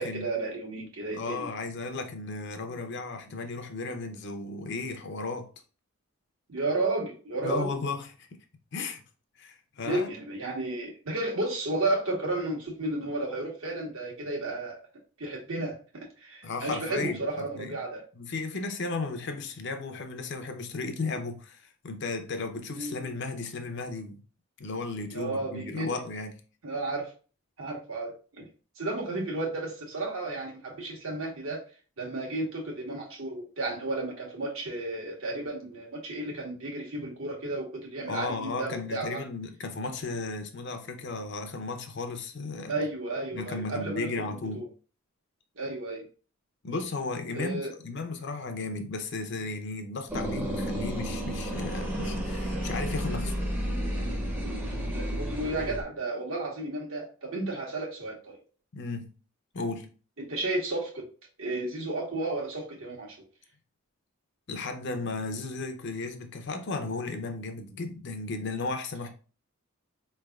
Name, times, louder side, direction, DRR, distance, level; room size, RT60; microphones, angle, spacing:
voice 1, 0.0-1.5 6.5-7.7 9.8-14.8 15.2-18.0 22.7-22.9 25.1-26.0 26.6-27.1 27.6-28.5 28.8-31.6 32.0-39.2 42.7-44.1 44.5-44.6 45.6-46.0 47.3-47.7 54.9-58.4 60.2-61.0 61.4-63.2, right 2 dB, 70° right, 1.3 m, -33 dB
voice 2, 1.1-5.5 7.4-8.3 8.7-9.0 9.4-10.1 16.4-17.2 17.5-17.7 18.1-24.2 24.6-26.4 38.1-42.8 43.3-44.6 46.6-53.3 58.7-59.1 59.5-59.9 64.5-69.1, left 3 dB, 50° left, 0.6 m, -34 dB
sound 1, 50.1-55.8, equal, 10° right, 0.6 m, -31 dB
4.5 x 3.2 x 2.3 m
head